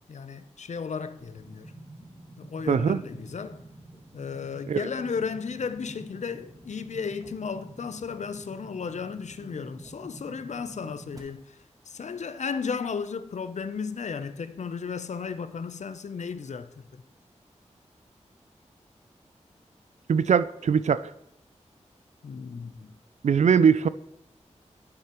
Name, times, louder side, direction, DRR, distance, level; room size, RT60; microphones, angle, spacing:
voice 1, 0.0-1.7 2.4-3.6 4.1-11.6 11.9-17.0 22.2-23.0, left 5 dB, 70° left, 0.6 m, -34 dB
sound 1, 1.2-11.2, right 2 dB, 30° right, 2.2 m, -48 dB
voice 2, 2.7-3.0 4.7-4.8 20.1-21.1 23.2-23.9, right 6 dB, 70° right, 0.4 m, -21 dB
9.4 x 8.3 x 3.0 m
cardioid pair, 45°, 12 cm